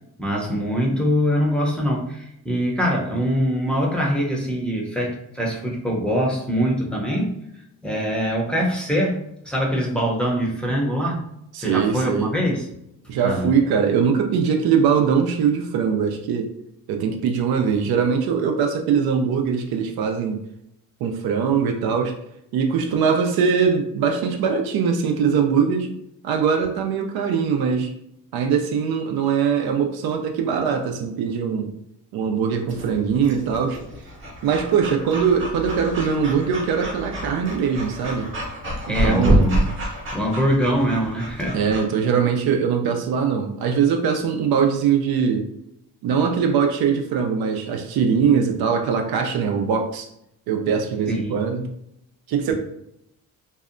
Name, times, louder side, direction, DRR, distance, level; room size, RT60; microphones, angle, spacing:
voice 1, 0.2-7.3 7.8-11.2 11.6-12.7 13.2-13.5 38.9-39.7 40.1-41.7 51.1-51.4 52.5-52.6, equal, 5° left, -3 dB, 0.5 m, -23 dB
voice 2, 11.5-12.3 13.1-16.5 16.9-20.4 21.0-22.1 22.5-25.9 26.2-27.9 28.3-31.7 32.1-33.8 34.4-38.3 38.9-39.6 41.5-45.5 46.0-50.1 50.5-51.7 52.3-52.5, right 6 dB, 85° right, 4 dB, 0.5 m, -21 dB
Breathing / Dog, 32.7-41.8, right 1 dB, 35° right, 0.8 m, -28 dB
2.7 x 2.1 x 2.4 m, 0.78 s
cardioid pair, 105°, 36 cm